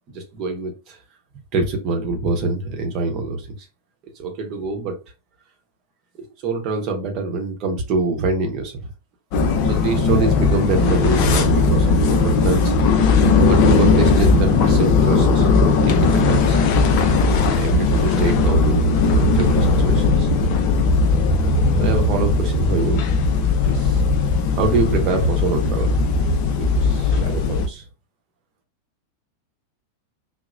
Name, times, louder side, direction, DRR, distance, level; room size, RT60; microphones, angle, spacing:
voice 1, 0.1-1.0 1.5-3.7 4.2-5.0 6.4-8.9 9.6-12.8 13.4-15.5 15.9-16.6 17.2-20.3 21.8-23.0 23.7-24.0 24.6-26.0 26.6-27.8, right 3 dB, 40° right, 0.8 m, -25 dB
sound 1, 9.3-27.7, left 3 dB, 45° left, 0.5 m, -17 dB
2.8 x 2.0 x 2.4 m
figure-of-eight pair, 90°, 0 cm